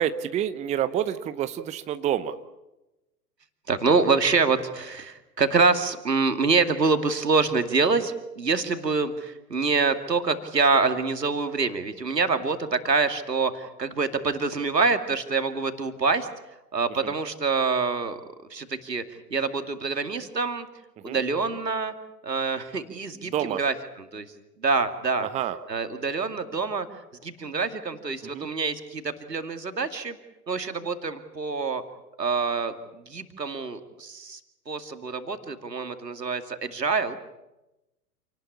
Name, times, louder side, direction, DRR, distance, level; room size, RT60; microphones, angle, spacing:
voice 1, 0.0-2.4 17.0-17.1 21.0-21.2 23.2-23.6 25.2-25.6 28.2-28.5, right 10 dB, 15° right, 12 dB, 0.8 m, -28 dB
voice 2, 3.7-16.3 16.7-18.2 18.5-20.7 21.0-21.9 22.2-23.3 23.6-23.7 24.1-24.3 24.6-25.3 25.7-26.9 27.2-30.2 30.5-31.8 32.2-34.4 34.7-37.2, right 4 dB, 80° right, 9 dB, 2.5 m, -26 dB
28.0 x 19.0 x 8.7 m, 0.97 s
figure-of-eight pair, 105°, 49 cm